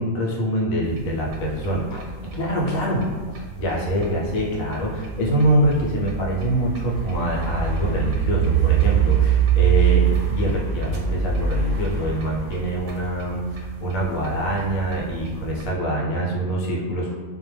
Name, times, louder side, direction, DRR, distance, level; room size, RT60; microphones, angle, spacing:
voice 1, 0.0-2.0 2.3-10.0 10.3-17.2, right 1 dB, 80° left, -3 dB, 1.0 m, -25 dB
sound 1, 0.8-15.7, right 8 dB, 85° right, 1.0 m, -25 dB
2.4 x 2.2 x 3.1 m, 1.4 s
omnidirectional pair, 1.5 m